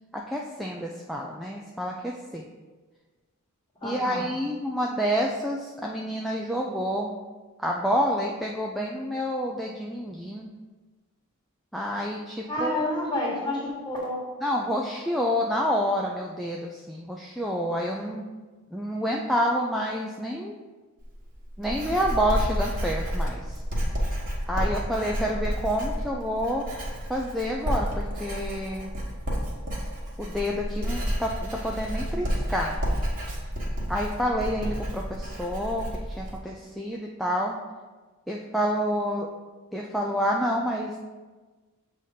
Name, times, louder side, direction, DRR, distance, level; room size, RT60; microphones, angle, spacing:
voice 1, 0.1-2.5 3.8-7.1 7.6-10.5 11.7-12.9 14.4-18.3 18.7-20.5 21.6-23.6 24.5-26.7 27.1-28.9 30.2-32.8 33.9-35.9 36.2-37.6 38.3-39.3 39.7-41.0, equal, ahead, -1 dB, 0.3 m, -28 dB
voice 2, 3.8-4.3 12.5-14.2, left 1 dB, 20° left, -4 dB, 1.5 m, -29 dB
Writing, 21.0-36.4, equal, 40° right, 1.3 m, -30 dB
7.4 x 2.7 x 4.9 m, 1.3 s
head